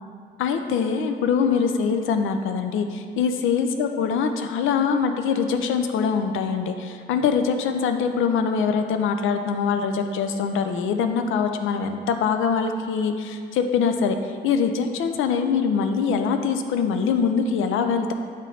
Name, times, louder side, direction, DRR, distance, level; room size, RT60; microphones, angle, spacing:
voice 1, 0.4-14.2 14.4-18.1, left 6 dB, 85° left, 6 dB, 0.5 m, -23 dB
8.1 x 3.2 x 3.8 m, 2.2 s
cardioid pair, 90°, 20 cm